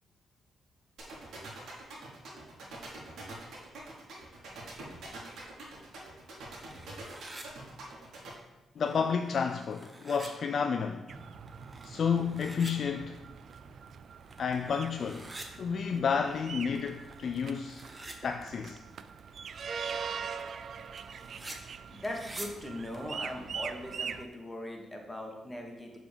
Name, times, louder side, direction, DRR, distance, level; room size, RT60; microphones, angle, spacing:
sound 1, 1.0-8.3, right 3 dB, 80° right, 1.5 m, -45 dB
sound 2, 6.6-7.5 8.3-8.4 8.8-10.3 11.5-12.7 13.5-13.6 14.1-15.5 16.6-18.2 21.0-21.6 22.0-22.5 22.9-23.0, right 2 dB, 25° right, 0.9 m, -48 dB
voice 1, 8.8-11.1 11.8-13.2 14.4-15.3 15.6-17.9 18.2-18.8, left 6 dB, 60° left, 0.3 m, -31 dB
sound 3, 11.1-24.2, right 6 dB, 60° right, 0.3 m, -43 dB
voice 2, 21.9-26.0, left 1 dB, 10° left, 1.4 m, -40 dB
6.8 x 3.6 x 5.0 m
cardioid pair, 75°, 0 cm